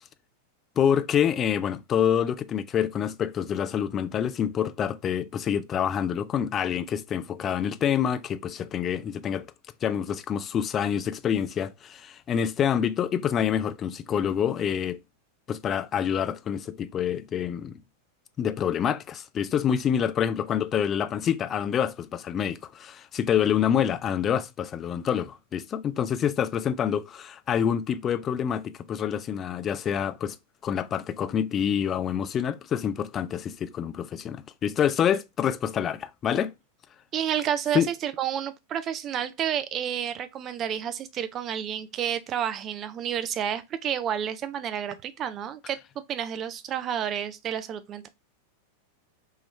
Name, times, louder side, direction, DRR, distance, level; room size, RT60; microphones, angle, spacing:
voice 1, 0.8-9.4 9.8-15.0 15.5-17.8 18.4-30.4 30.6-36.5 37.7-37.9, left 8 dB, 25° left, 0.4 m, -27 dB
voice 2, 37.1-45.8 46.1-48.1, right 9 dB, 30° right, 0.5 m, -30 dB
3.7 x 3.0 x 3.1 m
figure-of-eight pair, 90°, 0 cm